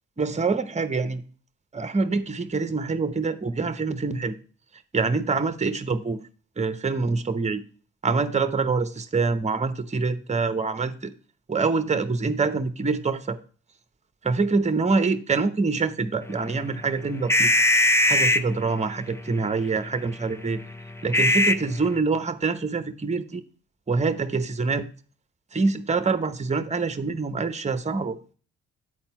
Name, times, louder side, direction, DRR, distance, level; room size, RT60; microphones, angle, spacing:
voice 1, 0.2-1.2 1.7-4.3 4.9-6.2 6.6-7.6 8.0-11.1 11.5-13.4 14.2-17.5 18.0-20.6 21.0-23.4 23.9-24.9 25.5-28.2, right 4 dB, 20° right, 0.9 m, -25 dB
sound 1, 16.2-22.0, left 1 dB, 10° left, 0.6 m, -23 dB
9.0 x 4.3 x 5.7 m
supercardioid pair, 50°, 34 cm